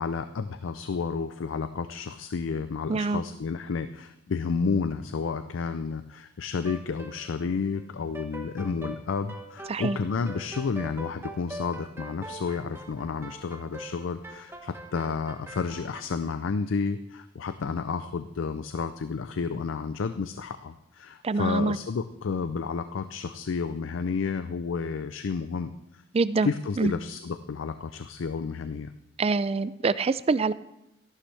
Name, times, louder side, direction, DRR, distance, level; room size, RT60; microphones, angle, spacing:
voice 1, 0.0-26.0 26.4-28.9, left 5 dB, 85° left, 11 dB, 0.4 m, -31 dB
voice 2, 2.9-3.2 9.7-10.0 21.2-21.8 26.1-26.5 26.8-26.9 29.2-30.5, right 3 dB, 30° right, 16 dB, 0.3 m, -25 dB
sound 1, 6.6-7.8 8.1-16.0, right 1 dB, 15° right, 1.1 m, -42 dB
13.0 x 11.5 x 3.3 m, 0.87 s
head